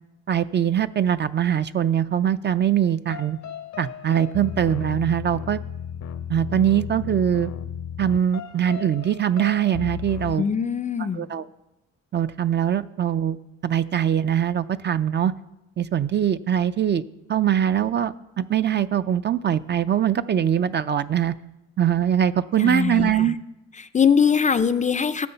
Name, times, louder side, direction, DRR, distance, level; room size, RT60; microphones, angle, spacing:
voice 1, 0.3-3.4 3.8-5.6 6.3-7.5 8.0-10.5 11.1-11.4 12.1-13.4 13.6-15.3 15.8-17.0 17.3-21.3 21.8-23.3, right 10 dB, 35° right, 12 dB, 0.4 m, -22 dB
Mysterious and sinister, 3.1-10.4, left 9 dB, 60° left, 0.7 m, -34 dB
voice 2, 10.4-11.3 22.6-23.3 23.8-25.3, left 7 dB, 25° left, 12 dB, 0.4 m, -22 dB
12.5 x 6.9 x 5.6 m, 0.94 s
cardioid pair, 90°, 30 cm